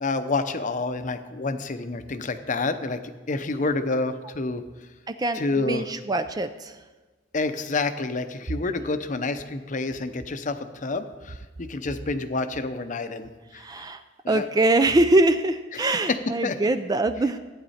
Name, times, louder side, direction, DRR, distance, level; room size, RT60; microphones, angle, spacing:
voice 1, 0.0-3.0 3.3-4.6 5.3-5.8 7.3-13.9 14.2-14.5 16.4-16.6, left 3 dB, 45° left, 9 dB, 0.7 m, -28 dB
voice 2, 5.1-6.8 13.5-14.0 14.3-17.4, right 2 dB, 20° right, 9 dB, 0.4 m, -23 dB
14.5 x 9.3 x 4.2 m, 1.3 s
head